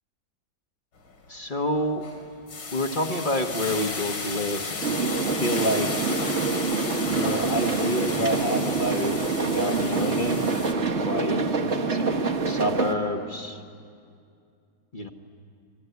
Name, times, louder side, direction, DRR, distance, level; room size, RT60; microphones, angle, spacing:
sound 1, 1.0-1.3 1.7-10.7, left 4 dB, 80° left, 3.5 m, -34 dB
voice 1, 1.3-2.0 2.7-4.9 5.3-6.1 7.0-10.4 10.7-11.5 11.9-13.6 14.9-15.1, equal, 30° left, 5 dB, 1.3 m, -28 dB
sound 2, 4.8-12.9, right 4 dB, 35° right, 1.6 m, -26 dB
30.0 x 21.0 x 9.5 m, 2.4 s
omnidirectional pair, 2.2 m